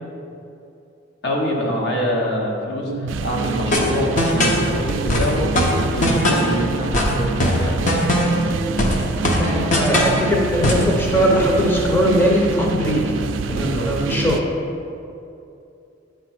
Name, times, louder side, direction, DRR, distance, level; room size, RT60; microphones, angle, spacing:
voice 1, 1.2-5.5 5.9-7.8 13.5-13.9, equal, 60° left, -1 dB, 1.1 m, -25 dB
sound 1, 2.9-14.4, right 4 dB, 85° right, 0.4 m, -26 dB
sound 2, 3.7-4.7 5.1-6.6 6.9-8.5 8.8-10.2 10.6-10.9, left 1 dB, 45° left, 0.8 m, -19 dB
voice 2, 9.4-13.0 13.5-14.4, equal, 10° left, -3 dB, 0.7 m, -20 dB
8.1 x 3.4 x 5.9 m, 2.6 s
head